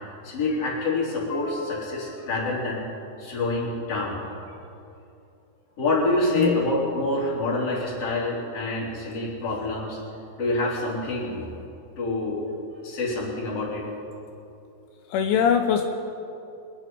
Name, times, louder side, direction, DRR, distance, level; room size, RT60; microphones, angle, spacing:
voice 1, 0.2-2.8 3.2-4.2 5.8-10.0 10.4-11.5 12.0-12.4 12.8-13.8, left 2 dB, 35° left, -6 dB, 3.9 m, -26 dB
voice 2, 15.1-15.8, left 7 dB, 85° left, 4 dB, 3.2 m, -22 dB
24.0 x 10.5 x 4.6 m, 2.7 s
omnidirectional pair, 5.4 m